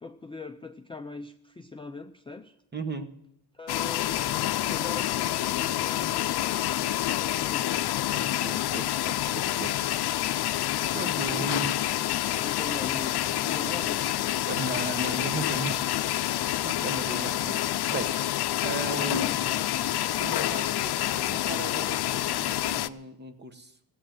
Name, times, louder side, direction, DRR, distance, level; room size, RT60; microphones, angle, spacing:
voice 1, 0.0-2.6 3.5-7.6 11.3-11.7 12.4-14.0, left 3 dB, 15° left, 5 dB, 0.4 m, -41 dB
voice 2, 2.7-3.1 8.1-10.0 10.9-11.7 14.5-15.9 16.6-18.2 18.6-19.7 20.2-23.8, right 3 dB, 25° right, 7 dB, 1.1 m, -36 dB
sound 1, 3.7-22.9, left 13 dB, 70° left, 0.6 m, -28 dB
sound 2, 7.9-22.4, right 1 dB, 90° right, 7.1 m, -54 dB
16.5 x 8.7 x 7.8 m, 0.81 s
wide cardioid pair, 155°, 40 cm